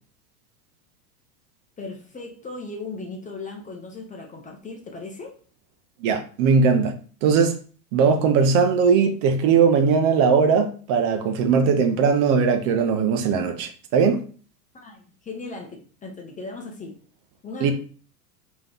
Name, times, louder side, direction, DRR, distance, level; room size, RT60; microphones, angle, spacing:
voice 1, 1.8-5.3 14.7-17.0 17.4-17.7, left 3 dB, 15° left, 2 dB, 0.7 m, -37 dB
voice 2, 6.0-6.9 7.2-7.6 7.9-14.2 17.6-17.7, right 5 dB, 50° right, 7 dB, 0.8 m, -19 dB
3.3 x 3.0 x 3.8 m, 0.41 s
hypercardioid pair, 105°, 46 cm